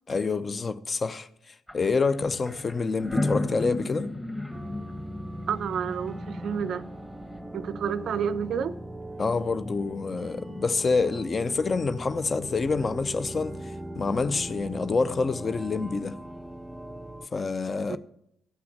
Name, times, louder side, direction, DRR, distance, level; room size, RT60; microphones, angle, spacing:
voice 1, 0.1-1.3 1.7-4.1 9.2-13.6 13.9-16.2 17.3-18.0, left 4 dB, 35° left, 0.6 m, -27 dB
sound 1, 1.7-1.8 2.1-7.0, left 2 dB, 15° left, 2.2 m, -33 dB
sound 2, 4.5-17.3, right 1 dB, 10° right, 0.6 m, -40 dB
voice 2, 5.5-6.8 7.5-8.7 17.9-18.0, right 7 dB, 55° right, 0.5 m, -29 dB
15.0 x 5.9 x 7.3 m
figure-of-eight pair, 40°, 0 cm